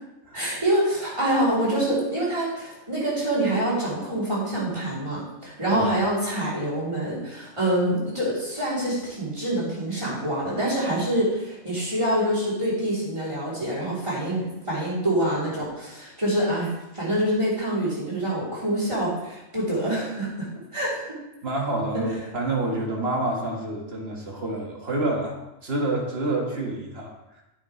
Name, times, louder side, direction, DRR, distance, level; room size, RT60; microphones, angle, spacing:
voice 1, 0.3-21.2, right 1 dB, 20° right, -7 dB, 3.4 m, -26 dB
voice 2, 21.4-25.4 25.6-27.4, right 2 dB, 50° right, -1 dB, 1.9 m, -28 dB
9.6 x 8.6 x 3.2 m, 0.95 s
omnidirectional pair, 1.4 m